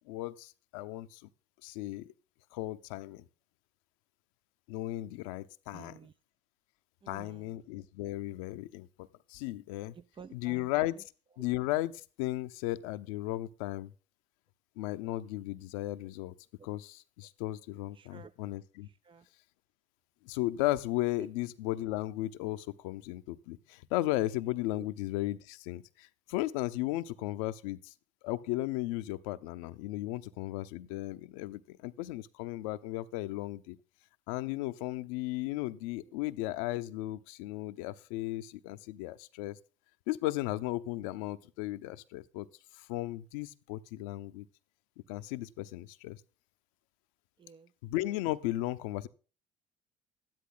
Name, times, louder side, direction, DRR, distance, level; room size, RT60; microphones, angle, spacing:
voice 1, 0.1-1.2 1.6-2.1 2.5-3.2 4.7-5.9 7.1-9.9 10.3-11.0 11.4-13.9 14.8-16.3 16.6-18.9 20.2-27.9 28.2-33.8 34.3-39.6 40.1-42.5 42.8-44.5 45.1-46.2 47.8-49.1, left 16 dB, 80° left, 0.8 m, -35 dB
voice 2, 5.7-6.1 7.0-7.5 9.9-10.7 17.9-18.3 18.8-19.3 24.8-24.9 36.1-36.2 47.4-47.7, right 6 dB, 30° right, 0.7 m, -52 dB
12.5 x 10.5 x 3.9 m
hypercardioid pair, 65°, 17 cm